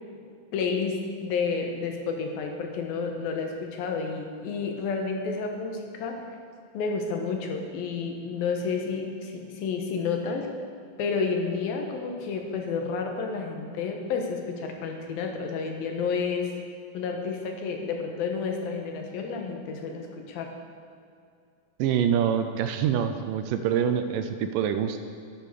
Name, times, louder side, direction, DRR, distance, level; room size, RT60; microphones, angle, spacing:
voice 1, 0.5-6.2 6.7-10.5 11.0-16.5 16.9-20.5, left 5 dB, 80° left, 3 dB, 3.1 m, -30 dB
voice 2, 21.8-25.0, right 8 dB, 75° right, 8 dB, 2.2 m, -25 dB
11.0 x 10.5 x 6.7 m, 2.4 s
omnidirectional pair, 4.2 m